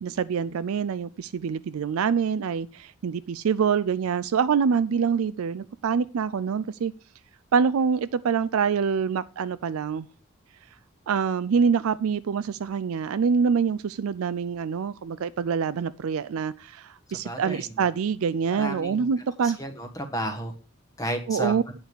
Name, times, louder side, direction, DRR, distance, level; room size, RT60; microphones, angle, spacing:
voice 1, 0.0-6.9 7.5-10.1 11.1-19.6 21.3-21.6, right 6 dB, 90° right, 15 dB, 0.4 m, -25 dB
voice 2, 17.1-17.7 18.5-19.1 19.4-20.5 21.0-21.5, equal, 15° left, 5 dB, 1.3 m, -33 dB
9.0 x 4.7 x 6.8 m, 0.36 s
head